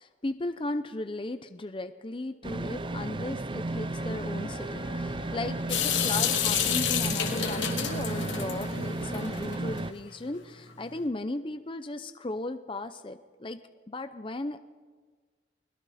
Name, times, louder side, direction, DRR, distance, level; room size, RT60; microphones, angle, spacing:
voice 1, 0.0-13.6 13.9-14.6, left 2 dB, 30° left, 9 dB, 0.6 m, -36 dB
sound 1, 2.4-9.9, right 2 dB, 25° right, 0.5 m, -34 dB
Wind instrument woodwind instrument, 3.6-8.5, left 5 dB, 70° left, 3.4 m, -48 dB
Water tap faucet / Sink (filling or washing) / Drip, 5.7-9.8, left 8 dB, 85° left, 2.7 m, -29 dB
29.0 x 21.0 x 4.2 m, 1.5 s
head